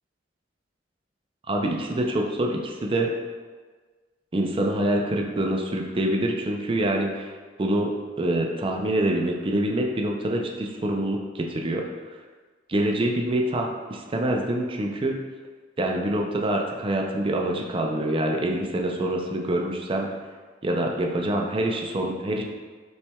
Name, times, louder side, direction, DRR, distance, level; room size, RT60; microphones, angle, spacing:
voice 1, 1.5-3.1 4.3-7.3 7.6-7.9 8.2-11.8 12.7-15.2 15.8-20.1 20.6-22.4, right 1 dB, 30° right, 1 dB, 0.4 m, -25 dB
5.5 x 3.2 x 2.3 m, 1.4 s
head